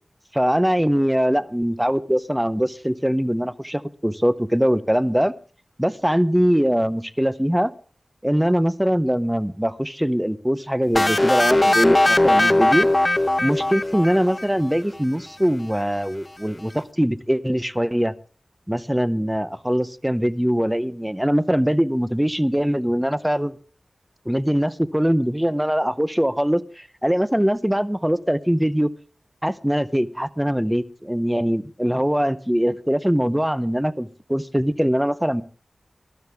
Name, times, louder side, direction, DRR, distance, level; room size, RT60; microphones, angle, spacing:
voice 1, 0.3-5.3 5.8-7.7 8.2-12.9 13.4-18.1 18.7-23.6 24.3-28.9 29.4-35.4, equal, 5° right, 14 dB, 0.7 m, -22 dB
sound 1, 10.9-14.7, left 1 dB, 25° left, 0.8 m, -19 dB
19.5 x 12.5 x 3.5 m, 0.39 s
wide cardioid pair, 75°, 0 cm